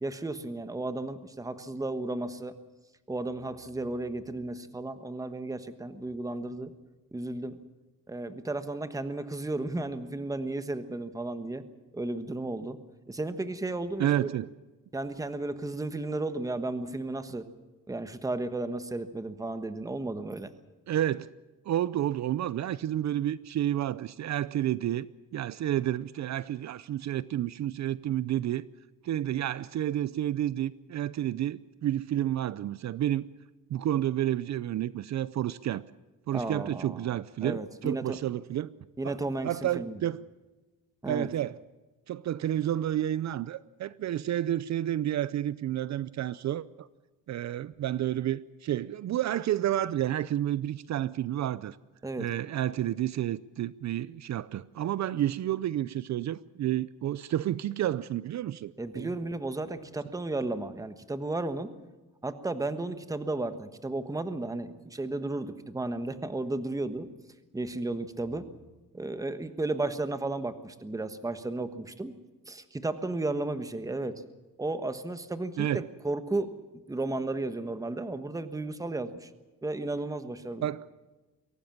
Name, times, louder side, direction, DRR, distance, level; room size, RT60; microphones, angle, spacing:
voice 1, 0.0-2.5 3.1-6.7 7.1-7.6 8.1-11.6 11.9-12.8 13.1-14.3 14.9-17.4 17.9-20.5 36.3-37.1 37.4-38.2 39.0-39.5 39.7-40.0 41.0-41.3 52.0-52.3 58.8-61.7 62.2-67.1 67.5-68.4 68.9-72.1 72.5-74.2 74.6-76.5 76.9-79.3 79.6-80.7, right 2 dB, 10° right, 1.3 m, -34 dB
voice 2, 14.0-14.5 20.9-21.3 21.7-25.1 25.3-28.6 29.0-33.2 33.7-35.8 36.3-38.7 39.0-39.2 39.4-40.2 41.0-41.6 42.1-46.9 47.3-51.8 52.2-59.1 75.6-75.8 80.6-80.8, right 12 dB, 55° right, 0.6 m, -30 dB
23.5 x 17.5 x 7.3 m
cardioid pair, 140°, 34 cm